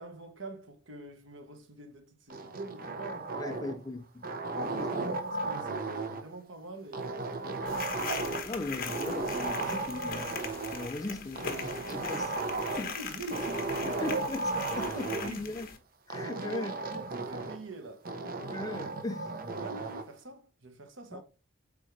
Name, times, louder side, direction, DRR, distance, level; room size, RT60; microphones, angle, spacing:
voice 1, 0.0-3.6 4.5-7.4 12.8-14.2 15.0-15.5 16.2-18.1 19.6-21.2, right 2 dB, 85° right, 1.3 m, -45 dB
sound 1, 2.3-3.9 4.2-6.3 6.9-8.6 8.9-10.9 11.4-12.9 13.3-15.3 16.1-17.6 18.1-20.1, right 3 dB, 50° right, 0.9 m, -35 dB
voice 2, 3.4-4.2 4.5-5.1 8.5-10.4 10.7-12.3 12.8-13.0 13.8-15.7 16.1-16.7 18.5-19.3 21.1-21.2, left 2 dB, 20° left, 0.5 m, -38 dB
sound 2, 7.6-15.8, left 6 dB, 50° left, 1.2 m, -40 dB
8.4 x 3.7 x 3.2 m
head